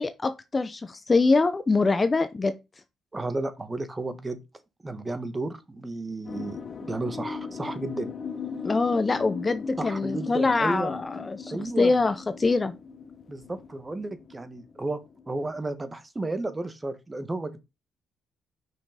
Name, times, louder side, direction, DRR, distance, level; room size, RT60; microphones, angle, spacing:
voice 1, 0.0-2.5 8.6-12.7, left 3 dB, 25° left, 0.8 m, -24 dB
voice 2, 3.1-4.4 4.8-6.6 6.9-8.1 9.8-11.0 11.5-12.0 13.3-15.0 15.3-17.6, right 2 dB, 20° right, 1.5 m, -32 dB
sound 1, 6.3-15.6, left 5 dB, 45° left, 1.1 m, -38 dB
6.4 x 5.8 x 5.0 m
cardioid pair, 110°, 0 cm